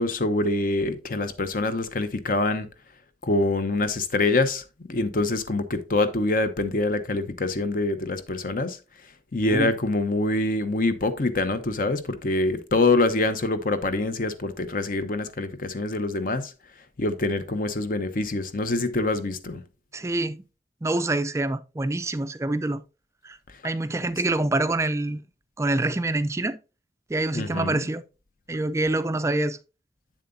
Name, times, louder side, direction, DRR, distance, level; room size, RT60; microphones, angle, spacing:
voice 1, 0.0-2.7 3.2-8.8 9.3-16.5 17.0-19.6 27.3-27.8, left 2 dB, 50° left, 0.8 m, -25 dB
voice 2, 19.9-20.4 20.8-22.8 23.2-23.4 23.6-25.2 25.6-26.6 27.1-28.0 28.5-29.6, right 2 dB, 15° right, 0.4 m, -26 dB
7.8 x 7.2 x 2.6 m
head